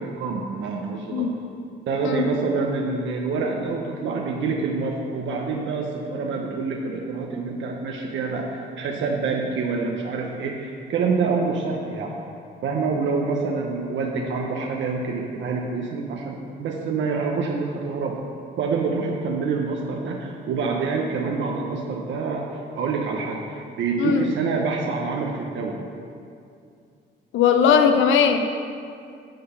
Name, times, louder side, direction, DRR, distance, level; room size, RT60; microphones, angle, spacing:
voice 1, 0.0-1.3 1.9-12.1 12.6-18.2 18.6-25.8, right 4 dB, 70° right, 0 dB, 0.8 m, -26 dB
voice 2, 27.3-28.6, left 6 dB, 75° left, 7 dB, 0.6 m, -19 dB
10.0 x 3.8 x 5.8 m, 2.4 s
cardioid pair, 90°, 20 cm